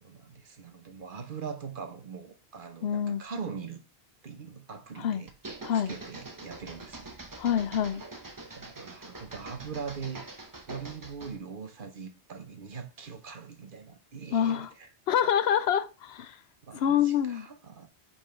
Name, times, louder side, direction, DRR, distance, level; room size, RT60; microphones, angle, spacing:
voice 1, 0.0-3.8 4.2-5.3 5.9-7.1 8.5-10.2 10.7-14.6 16.6-17.9, right 6 dB, 55° right, 1.1 m, -41 dB
voice 2, 2.8-3.2 5.0-5.2 5.6-5.9 7.4-8.0 14.3-14.7 15.1-16.4 16.7-17.5, left 9 dB, 80° left, 0.8 m, -26 dB
sound 1, 5.3-11.4, right 2 dB, 20° right, 0.7 m, -44 dB
5.4 x 4.4 x 4.4 m
omnidirectional pair, 1.1 m